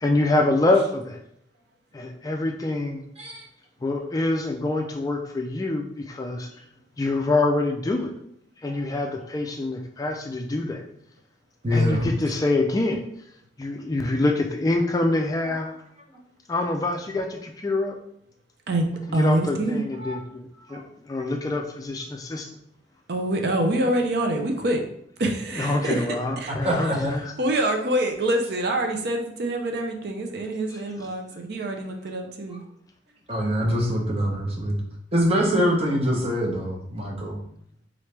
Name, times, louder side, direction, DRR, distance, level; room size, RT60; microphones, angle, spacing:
voice 1, 0.0-1.2 1.9-3.0 3.8-6.5 7.0-8.1 8.6-10.8 11.7-13.0 13.6-15.7 16.5-18.0 19.1-22.5 25.5-27.3 30.7-31.1, left 2 dB, 20° left, 2 dB, 0.3 m, -25 dB
voice 2, 11.6-12.1 15.4-15.5 20.0-20.2 20.7-20.8 26.5-27.2 33.3-34.8 35.1-37.4, equal, 35° right, -1 dB, 0.8 m, -24 dB
voice 3, 19.1-19.8 23.1-24.8 25.2-26.1 26.4-26.5 27.4-32.6, right 1 dB, 60° right, 3 dB, 0.5 m, -25 dB
3.8 x 3.1 x 3.3 m, 0.70 s
head